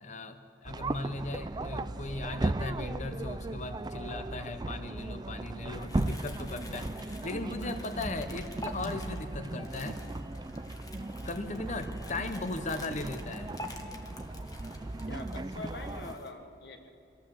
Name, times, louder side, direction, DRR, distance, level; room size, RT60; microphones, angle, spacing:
voice 1, 0.0-10.0 11.2-13.5, left 2 dB, 40° left, 9 dB, 0.8 m, -37 dB
sound 1, 0.6-16.2, right 2 dB, 20° right, 0.4 m, -37 dB
sound 2, 5.7-16.3, left 1 dB, 20° left, 1.2 m, -48 dB
voice 2, 15.1-16.9, left 2 dB, 60° left, 6 dB, 1.4 m, -44 dB
25.0 x 14.5 x 7.6 m, 2.8 s
head